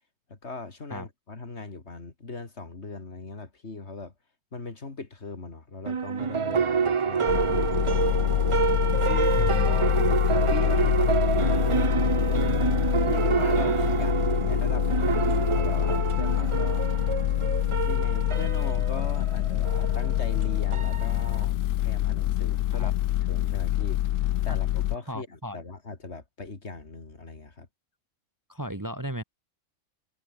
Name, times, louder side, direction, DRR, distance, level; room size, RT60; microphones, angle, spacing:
voice 1, 0.3-4.1 4.5-7.6 9.0-11.9 13.1-16.9 17.9-23.0 23.3-27.7, left 3 dB, 55° left, 2.9 m, -39 dB
sound 1, 5.8-21.4, right 6 dB, 40° right, 0.4 m, -27 dB
sound 2, 7.3-25.0, left 14 dB, 85° left, 1.0 m, -26 dB
voice 2, 9.4-9.8 22.7-22.9 24.5-24.6 25.1-25.6 28.5-29.2, right 1 dB, 15° right, 1.3 m, -35 dB
omnidirectional pair, 1.3 m